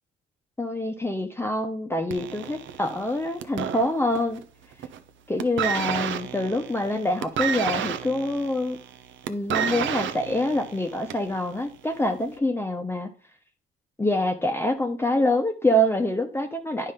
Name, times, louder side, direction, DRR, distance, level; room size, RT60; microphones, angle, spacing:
voice 1, 0.6-4.4 5.3-8.8 9.3-13.1 14.0-16.9, left 1 dB, 10° left, 5 dB, 0.9 m, -26 dB
sound 1, 2.1-4.4 4.7-5.1 5.4-11.4 12.2-12.3, right 8 dB, 70° right, 0.8 m, -30 dB
9.5 x 5.5 x 3.7 m, 0.39 s
cardioid pair, 90°, 20 cm